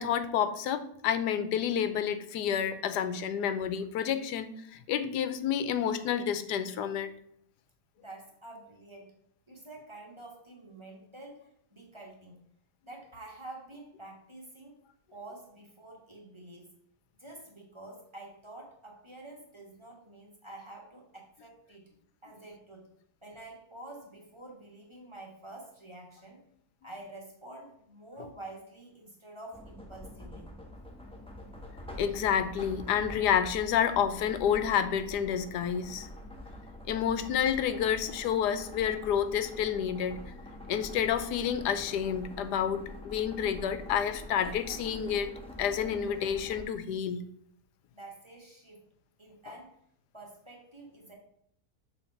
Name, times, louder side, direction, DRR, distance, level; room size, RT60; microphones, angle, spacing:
voice 1, 0.0-7.1 32.0-36.1 36.9-40.2 40.7-45.3 45.6-47.2, left 8 dB, 90° left, 11 dB, 1.2 m, -29 dB
voice 2, 8.0-9.1 9.5-12.4 12.8-14.8 15.1-16.8 17.2-21.9 22.2-22.9 23.2-26.4 26.8-30.5 47.9-48.8 49.2-49.8 50.1-51.1, right 2 dB, 20° right, -1 dB, 1.4 m, -48 dB
sound 1, 29.5-46.6, left 1 dB, 5° left, 0.9 m, -45 dB
7.2 x 3.3 x 5.7 m, 0.70 s
omnidirectional pair, 1.7 m